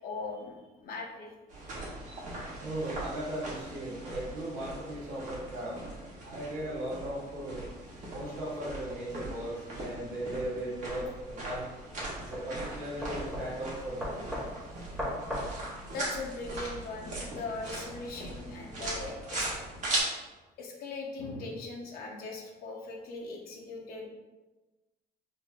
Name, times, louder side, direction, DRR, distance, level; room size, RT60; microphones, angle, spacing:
voice 1, 0.0-1.3 15.9-19.5 20.6-24.1, left 3 dB, 65° left, 0 dB, 0.7 m, -40 dB
sound 1, 1.5-20.0, right 2 dB, 45° right, 1.3 m, -40 dB
voice 2, 2.6-5.8 6.2-7.7 8.1-11.7 12.2-14.2, right 1 dB, 85° right, -5 dB, 1.1 m, -37 dB
sound 2, 10.8-16.5, equal, 5° right, 1.1 m, -39 dB
4.1 x 2.0 x 3.4 m, 1.1 s
cardioid pair, 110°, 17 cm